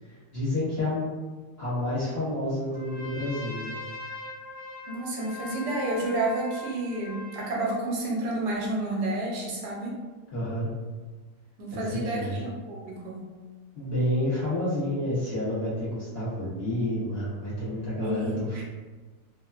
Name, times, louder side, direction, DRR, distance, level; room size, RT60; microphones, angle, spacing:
voice 1, 0.1-1.0 1.6-3.7 10.3-10.7 11.7-12.4 13.7-18.6, left 1 dB, 50° left, -11 dB, 0.8 m, -29 dB
Trumpet, 2.7-7.7, left 2 dB, 55° right, 1.0 m, -41 dB
voice 2, 4.9-10.0 11.6-13.3 18.0-18.6, right 2 dB, 75° right, -3 dB, 1.2 m, -30 dB
3.2 x 2.0 x 2.3 m, 1.3 s
omnidirectional pair, 1.8 m